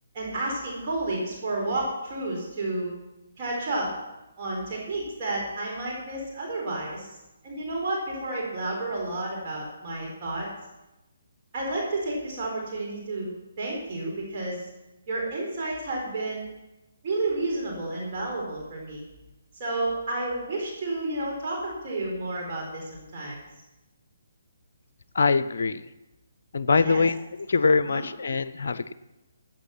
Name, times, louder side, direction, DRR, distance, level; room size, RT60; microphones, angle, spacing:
voice 1, 0.1-2.9 3.4-3.9 4.4-7.1 7.4-10.5 11.5-14.6 15.1-16.5 17.0-19.0 19.6-23.4 26.8-27.0 27.8-28.0, right 2 dB, 40° right, -3 dB, 4.3 m, -31 dB
voice 2, 25.1-25.8 26.5-27.1 27.5-28.9, left 4 dB, 60° left, 13 dB, 0.5 m, -23 dB
14.0 x 8.8 x 5.9 m, 0.99 s
figure-of-eight pair, 140°, 0 cm